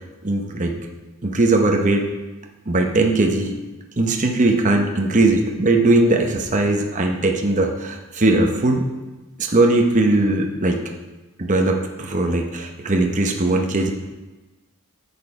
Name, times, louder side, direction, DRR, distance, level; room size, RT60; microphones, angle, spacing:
voice 1, 0.2-0.8 1.2-2.0 2.7-3.5 4.0-8.9 9.4-10.8 11.4-13.9, right 2 dB, 35° right, 3 dB, 0.8 m, -19 dB
6.9 x 6.5 x 4.8 m, 1.2 s
head